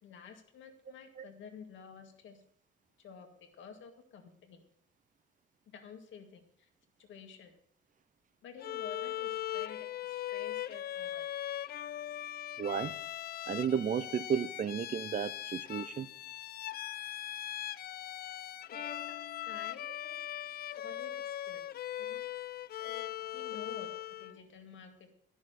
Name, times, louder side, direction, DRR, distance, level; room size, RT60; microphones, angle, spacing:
voice 1, 0.0-2.4 3.0-3.3 3.5-4.6 5.7-6.7 7.0-7.5 8.4-11.3 18.8-19.2 19.4-20.2 20.6-21.7 22.0-22.4 22.7-25.1, left 6 dB, 75° left, 1.8 m, -51 dB
Bowed string instrument, 8.6-24.4, left 12 dB, 50° left, 0.4 m, -40 dB
voice 2, 12.6-13.0 13.5-16.1, right 7 dB, 40° right, 0.5 m, -33 dB
11.0 x 6.4 x 6.7 m
cardioid pair, 90°, 20 cm